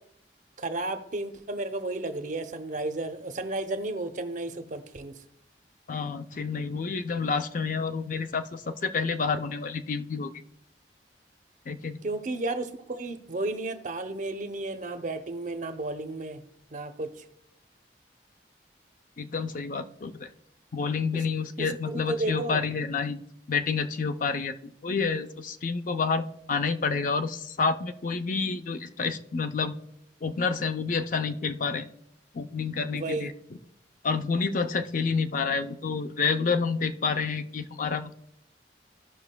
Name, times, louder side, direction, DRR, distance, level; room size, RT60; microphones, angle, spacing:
voice 1, 0.6-5.2 12.0-16.4 16.7-17.2 21.1-21.3 21.6-22.6 32.9-33.3, right 2 dB, 45° right, 0.7 m, -33 dB
voice 2, 5.9-10.3 11.7-12.0 19.2-20.3 20.7-23.2 23.5-29.8 30.2-31.9 32.3-33.3 34.0-38.1, left 5 dB, 50° left, 0.5 m, -29 dB
16.5 x 5.8 x 2.2 m
head